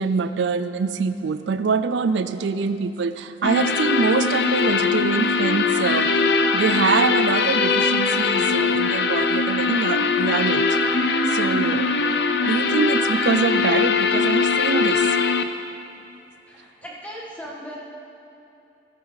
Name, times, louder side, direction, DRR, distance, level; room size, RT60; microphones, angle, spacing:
voice 1, 0.0-6.1 6.5-10.7 11.3-12.0 12.4-15.2, right 5 dB, 75° right, 11 dB, 0.4 m, -24 dB
sound 1, 3.4-15.4, left 4 dB, 60° left, 0.6 m, -21 dB
voice 2, 16.5-17.8, equal, 10° left, -4 dB, 1.7 m, -38 dB
16.0 x 10.5 x 4.0 m, 2.9 s
head